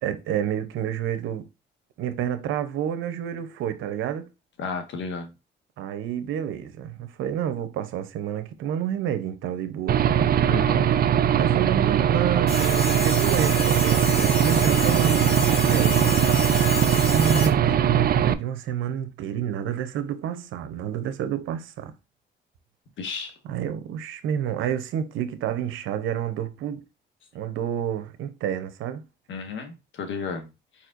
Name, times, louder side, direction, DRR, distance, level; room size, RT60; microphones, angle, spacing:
voice 1, 0.0-1.5 2.0-4.3 5.8-10.1 11.3-16.2 17.1-21.9 23.4-26.8 27.3-29.0, right 9 dB, 90° right, 0.8 m, -29 dB
voice 2, 4.6-5.3 10.5-10.8 23.0-23.4 29.3-30.5, left 4 dB, 70° left, 1.4 m, -32 dB
Aircraft / Engine, 9.9-18.3, right 9 dB, 50° right, 0.5 m, -21 dB
sound 1, 12.5-17.5, left 3 dB, 50° left, 3.1 m, -30 dB
4.9 x 4.3 x 2.5 m
cardioid pair, 90°, 20 cm